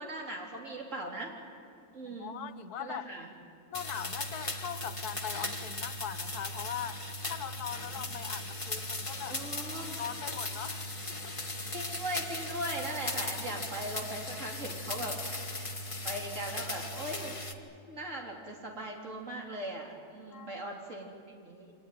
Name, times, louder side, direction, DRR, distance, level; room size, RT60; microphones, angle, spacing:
voice 1, 0.0-1.3 1.9-2.3 2.8-3.3 7.8-7.9 9.3-10.0 11.7-15.7 16.0-17.4 17.9-21.7, right 1 dB, 50° right, 0 dB, 3.9 m, -39 dB
voice 2, 2.0-3.1 3.7-7.0 7.3-9.4 10.0-11.4 20.3-20.6 20.9-21.1, left 9 dB, 85° left, 10 dB, 1.5 m, -41 dB
sound 1, 3.7-17.5, left 2 dB, 20° left, 1.3 m, -38 dB
Bathtub (filling or washing), 7.7-17.5, left 2 dB, 60° left, 3.9 m, -54 dB
25.5 x 19.0 x 9.5 m, 2.6 s
omnidirectional pair, 1.6 m